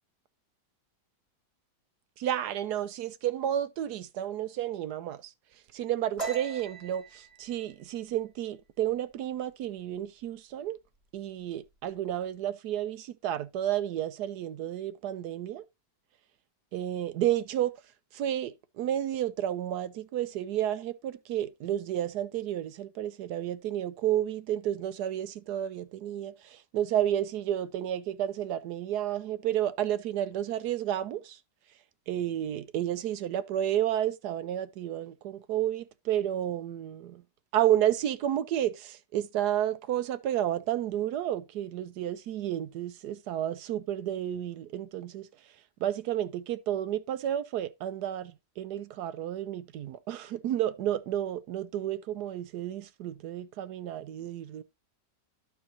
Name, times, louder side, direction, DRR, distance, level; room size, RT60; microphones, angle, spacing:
voice 1, 2.2-5.3 5.7-10.8 11.1-15.7 16.7-17.7 18.1-31.4 32.1-37.2 37.5-45.3 45.8-54.6, right 11 dB, 70° right, 1.1 m, -31 dB
sound 1, 6.2-9.6 9.9-10.3 10.6-11.2 11.4-12.2, right 4 dB, 20° right, 1.2 m, -41 dB
13.0 x 4.5 x 2.8 m
omnidirectional pair, 1.9 m